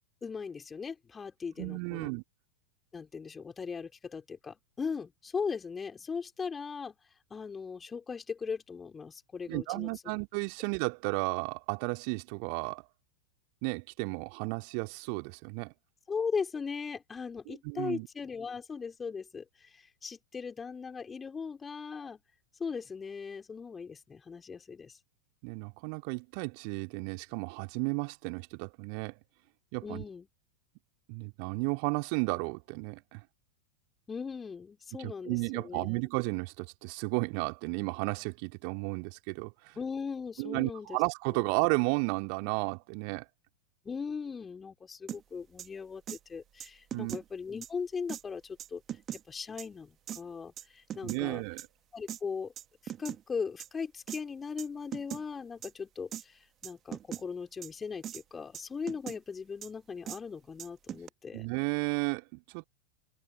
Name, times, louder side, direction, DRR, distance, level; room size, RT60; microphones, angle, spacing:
voice 1, 0.2-2.1 2.9-7.0 7.3-9.9 16.1-22.2 22.6-25.0 29.8-30.3 34.1-35.9 39.8-41.0 43.8-48.8 49.3-51.4 51.9-52.5 52.8-61.5, left 5 dB, 15° left, 5.4 m, -38 dB
voice 2, 1.6-2.2 9.5-12.9 13.6-15.7 17.5-18.1 25.4-29.2 29.7-30.0 31.1-33.2 35.0-39.8 40.4-43.3 46.9-47.1 51.0-51.6 61.3-62.6, right 40 dB or more, 45° right, 2.9 m, -33 dB
sound 1, 45.1-45.2 45.6-45.7 46.1-46.2 46.6-47.2 47.6-47.7 48.1-48.2 48.6-49.2 49.6-49.7 50.1-50.2 50.6-51.2 51.6-51.7 52.1-52.2 52.6-53.2 53.6-53.7 54.1-54.2 54.6-54.7 54.9-55.2 55.6-55.7 56.1-56.2 56.6-57.2 57.6-57.7 58.0-58.2 58.5-59.2 59.6-59.7 60.1-60.2 60.6-61.1, right 10 dB, 30° right, 1.6 m, -40 dB
figure-of-eight pair, 90°, 0 cm